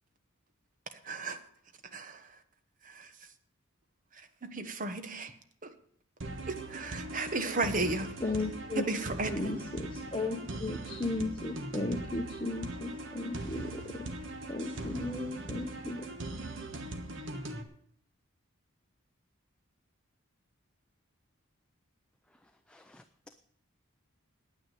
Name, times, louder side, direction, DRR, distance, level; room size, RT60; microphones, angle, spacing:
voice 1, 0.9-1.4 1.8-2.4 2.8-3.3 4.1-5.4 5.6-5.7 6.5-8.2 8.7-9.5, right 2 dB, 40° right, 1.1 m, -35 dB
sound 1, 6.2-17.6, right 2 dB, 60° right, 1.3 m, -40 dB
voice 2, 8.2-8.9 9.3-14.1 14.5-16.1, left 2 dB, 25° left, 1.0 m, -35 dB
voice 3, 22.3-23.4, left 1 dB, 5° left, 0.5 m, -59 dB
9.8 x 9.4 x 9.2 m
head